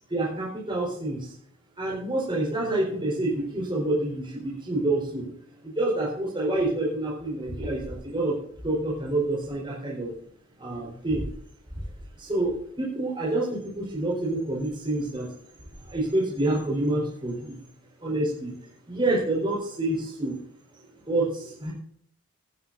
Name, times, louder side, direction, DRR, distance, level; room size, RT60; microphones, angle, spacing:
voice 1, 0.1-1.3 1.8-5.3 5.6-8.4 8.6-10.1 10.6-11.2 12.2-15.3 15.9-17.6 18.0-18.5 18.9-20.4 21.1-21.7, right 2 dB, 20° right, -5 dB, 4.3 m, -27 dB
17.0 x 12.5 x 2.7 m, 0.65 s
head